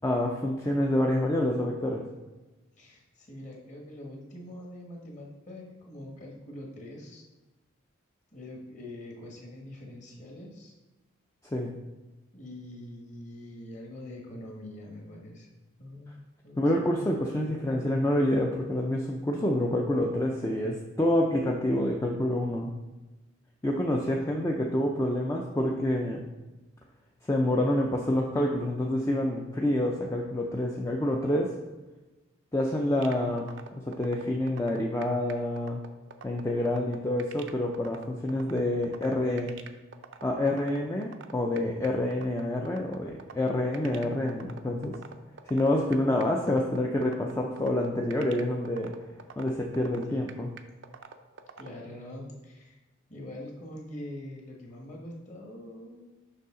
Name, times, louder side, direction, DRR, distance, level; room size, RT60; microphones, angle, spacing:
voice 1, 0.0-2.0 11.5-11.7 16.6-22.7 23.6-26.3 27.2-31.5 32.5-33.5 33.9-35.8 36.2-39.5 40.2-45.0 45.5-48.9 49.4-50.5, left 1 dB, 15° left, 0 dB, 0.4 m, -27 dB
voice 2, 2.8-7.2 8.3-10.7 12.3-15.5 15.8-16.9 50.1-50.3 51.6-52.8 53.1-56.1, left 1 dB, 35° left, -1 dB, 1.4 m, -44 dB
sound 1, 33.0-51.7, right 6 dB, 60° right, 0.5 m, -45 dB
6.7 x 5.6 x 3.7 m, 1.1 s
head